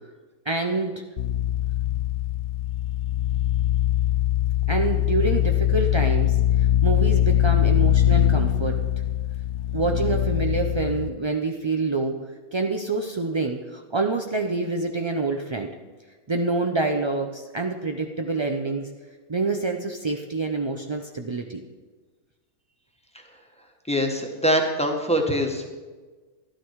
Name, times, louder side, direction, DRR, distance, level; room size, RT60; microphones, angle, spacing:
voice 1, 0.5-1.0 4.7-8.8 9.7-12.2 12.5-15.7 16.3-18.9 19.3-21.6, right 3 dB, 45° right, 3 dB, 0.3 m, -27 dB
sound 1, 1.2-11.1, left 12 dB, 65° left, 0.8 m, -22 dB
voice 2, 23.9-25.6, equal, 5° left, 1 dB, 1.3 m, -23 dB
13.0 x 12.0 x 4.7 m, 1.3 s
omnidirectional pair, 1.6 m